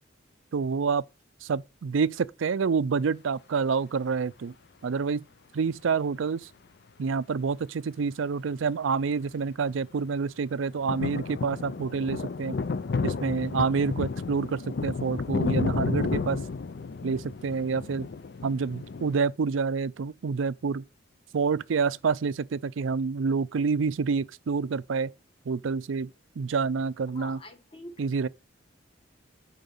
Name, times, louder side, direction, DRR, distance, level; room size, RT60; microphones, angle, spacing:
voice 1, 0.5-1.0 1.4-4.5 4.8-5.2 5.5-6.5 7.0-12.6 13.0-16.4 17.0-18.1 18.4-20.8 21.3-25.1 25.5-26.1 26.4-27.4 28.0-28.3, right 5 dB, 85° right, 0.4 m, -28 dB
sound 1, 9.3-9.4 9.8-9.9 10.7-19.2, left 4 dB, 60° left, 0.5 m, -31 dB
voice 2, 27.1-28.0, left 2 dB, 30° left, 1.4 m, -44 dB
9.3 x 4.0 x 7.0 m
head